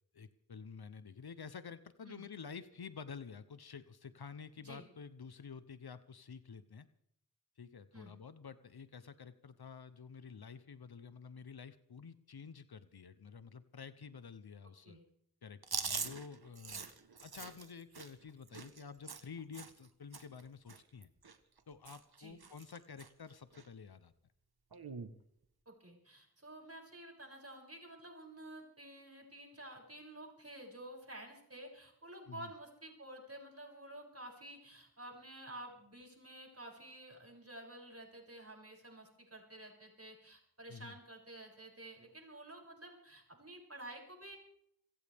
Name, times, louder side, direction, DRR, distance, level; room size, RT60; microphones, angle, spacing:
voice 1, 0.1-6.9 7.6-15.0 15.4-16.8 17.2-21.1 21.7-24.1 32.3-32.5 40.7-41.0, left 6 dB, 90° left, 12 dB, 0.9 m, -50 dB
voice 2, 4.6-4.9 7.9-8.1 14.8-15.0 22.2-22.4 25.7-44.4, right 1 dB, 40° right, 0 dB, 7.1 m, -51 dB
Chewing mastication, 15.6-19.9 20.1-20.4 20.7-21.6 21.8-22.2 22.4-23.1 23.5-23.7 24.7-25.1, right 5 dB, 90° right, 1.3 m, -43 dB
27.0 x 15.0 x 3.5 m, 0.72 s
wide cardioid pair, 45°, 37 cm